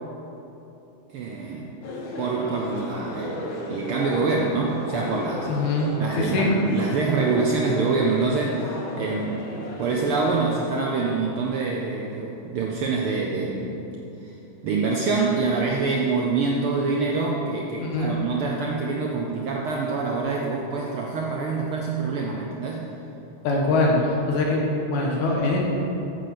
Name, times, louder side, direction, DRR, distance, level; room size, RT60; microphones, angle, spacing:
voice 1, 1.1-1.7 2.2-5.5 6.0-13.8 14.2-14.3 14.6-22.9, right 4 dB, 85° right, -1 dB, 1.2 m, -25 dB
sound 1, 1.8-10.5, left 1 dB, 55° left, 1.5 m, -35 dB
voice 2, 5.5-6.5 17.8-18.1 23.4-25.6, left 2 dB, 80° left, -2 dB, 2.8 m, -23 dB
8.0 x 6.6 x 7.7 m, 3.0 s
omnidirectional pair, 3.4 m